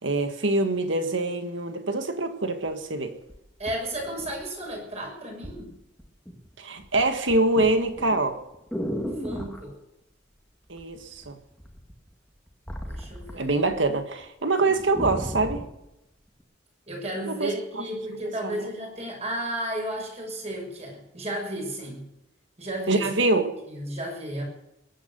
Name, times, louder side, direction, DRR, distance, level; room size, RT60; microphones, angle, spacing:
voice 1, 0.0-3.1 6.6-8.4 10.7-11.4 13.3-15.6 17.3-17.5 18.4-18.6 22.9-23.5, right 2 dB, 80° right, 8 dB, 1.8 m, -24 dB
sound 1, 2.7-2.8 3.3-4.8 5.4-5.6 6.0-6.5 6.8-9.6 10.8-11.3 11.6-13.9 14.2-14.3 14.6-15.7 16.4-16.5, equal, 5° left, 2.0 m, -35 dB
voice 2, 3.6-5.7 9.2-9.8 12.8-13.5 16.9-22.1 22.6-23.1 23.7-24.4, right 1 dB, 35° right, 0 dB, 6.4 m, -33 dB
22.0 x 9.5 x 6.9 m, 0.89 s
head